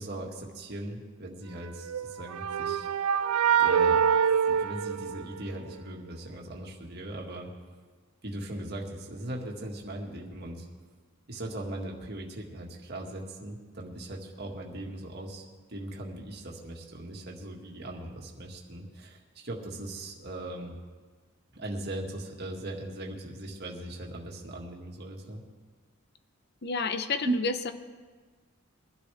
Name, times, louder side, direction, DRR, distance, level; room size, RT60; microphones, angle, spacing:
voice 1, 0.0-2.9 3.6-4.0 4.5-7.5 8.2-10.7 11.3-20.8 21.5-25.4 27.2-27.3, right 1 dB, 50° right, 0 dB, 1.9 m, -39 dB
sound 1, 1.8-5.7, right 7 dB, 85° right, 0.5 m, -25 dB
voice 2, 26.6-27.7, left 4 dB, 50° left, 9 dB, 0.8 m, -30 dB
22.5 x 12.0 x 3.5 m, 1.4 s
head